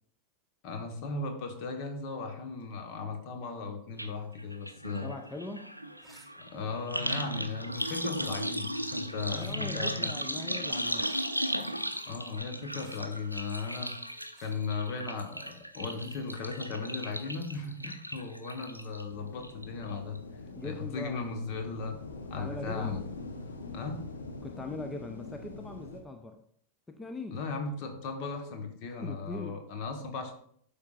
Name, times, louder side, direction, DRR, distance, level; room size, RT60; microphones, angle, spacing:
voice 1, 0.6-5.1 6.4-10.1 12.1-14.0 14.4-20.2 20.6-22.0 22.3-23.0 23.7-24.0 27.3-30.3, left 4 dB, 45° left, 5 dB, 1.2 m, -37 dB
sound 1, 4.0-4.1 4.4-19.0 19.4-19.9 20.2-20.3, equal, 90° right, 0.5 m, -36 dB
voice 2, 5.0-5.8 9.3-11.1 20.6-21.3 22.4-23.0 24.4-26.4 26.9-27.4 29.0-29.6, left 2 dB, 15° left, 6 dB, 0.6 m, -41 dB
sound 2, 6.0-6.3 7.7-8.0 9.3-9.6 11.1-11.4 12.8-13.0 14.3-14.5, right 2 dB, 5° right, 1.1 m, -57 dB
sound 3, 19.1-26.0, left 3 dB, 70° left, 0.8 m, -44 dB
12.0 x 5.2 x 2.5 m, 0.64 s
figure-of-eight pair, 90°, 0 cm